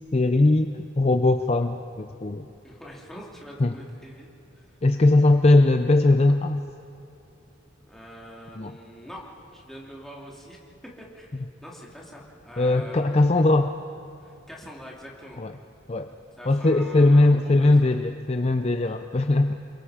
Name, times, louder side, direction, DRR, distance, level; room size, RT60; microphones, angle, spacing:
voice 1, 0.1-2.5 3.6-3.7 4.8-6.6 8.6-8.7 12.6-13.7 15.4-15.5 15.9-16.1 16.5-19.5, left 2 dB, 30° left, 7 dB, 0.5 m, -20 dB
voice 2, 2.6-4.3 4.5-4.7 7.8-10.6 10.8-11.3 11.6-13.3 14.2-15.4 16.4-17.9 18.9-19.0, equal, ahead, -4 dB, 2.9 m, -44 dB
29.0 x 22.5 x 5.1 m, 2.7 s
head